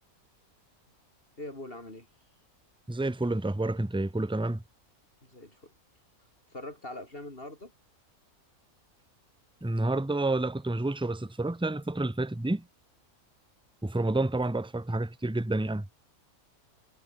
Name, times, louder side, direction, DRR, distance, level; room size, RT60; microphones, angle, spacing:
voice 1, 1.4-2.1 5.2-5.7 6.5-7.7, left 1 dB, 40° left, 4.6 m, -42 dB
voice 2, 2.9-4.6 9.6-12.6 13.8-15.9, right 2 dB, 5° right, 0.8 m, -29 dB
omnidirectional pair, 1.5 m